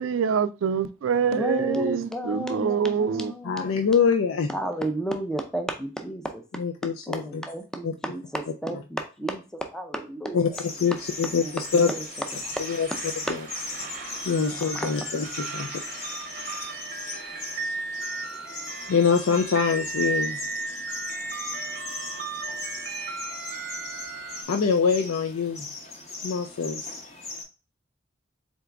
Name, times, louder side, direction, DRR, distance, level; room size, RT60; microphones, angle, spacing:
voice 1, 0.0-3.3, right 6 dB, 75° right, 0.4 m, -25 dB
voice 2, 1.4-3.8 4.5-6.4 7.1-10.6 11.4-12.0 12.3-12.6 13.3-13.4 14.5-14.9, right 1 dB, 5° left, 0.4 m, -32 dB
voice 3, 3.4-4.5 6.6-7.2 7.8-7.9 10.3-10.5 10.8-11.9 12.6-12.9 13.3-13.4 14.3-15.2 15.5-15.7 18.9-20.4 24.5-25.7 26.2-26.8, left 6 dB, 90° left, 0.4 m, -24 dB
sound 1, 10.5-27.4, left 3 dB, 35° left, 0.8 m, -38 dB
sound 2, 10.9-24.4, right 4 dB, 40° right, 0.6 m, -36 dB
3.9 x 3.5 x 3.4 m
head